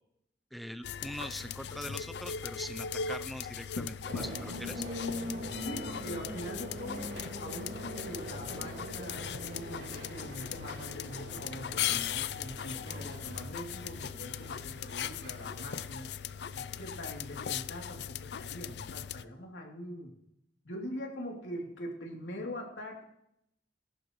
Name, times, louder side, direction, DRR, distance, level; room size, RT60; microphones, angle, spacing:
voice 1, 0.5-4.8, equal, ahead, 9 dB, 0.5 m, -42 dB
sound 1, 0.8-19.2, left 8 dB, 65° left, 0.4 m, -39 dB
sound 2, 4.1-17.4, equal, 90° right, 3.4 m, -43 dB
voice 2, 5.6-16.1 16.5-20.2 20.6-23.0, equal, 90° left, 0 dB, 3.0 m, -43 dB
19.0 x 11.5 x 3.1 m, 0.77 s
head